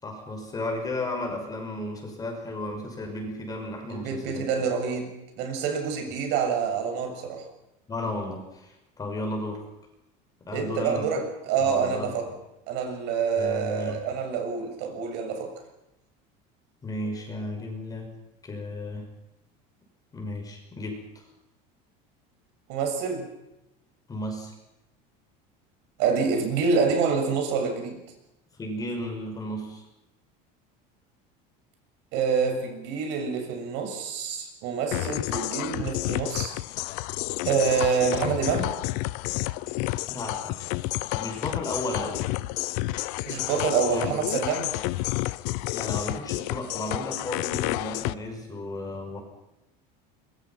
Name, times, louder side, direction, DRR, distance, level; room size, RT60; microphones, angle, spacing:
voice 1, 0.0-4.5 6.1-6.2 7.9-9.6 10.5-11.2 11.6-12.2 13.4-14.0 16.8-18.1 18.4-19.1 20.1-21.0 24.1-24.5 28.5-29.8 40.1-40.6 41.1-42.2 43.9-44.5 45.7-49.2, left 1 dB, 20° left, 3 dB, 5.9 m, -34 dB
voice 2, 3.9-7.4 10.5-12.3 12.7-15.5 22.7-23.3 26.0-28.0 32.1-36.5 37.4-38.8 43.3-44.7, right 6 dB, 60° right, 4 dB, 7.0 m, -27 dB
sound 1, 34.9-48.1, left 20 dB, 75° left, 0.8 m, -30 dB
25.5 x 23.0 x 6.0 m, 0.91 s
cardioid pair, 155°, 20 cm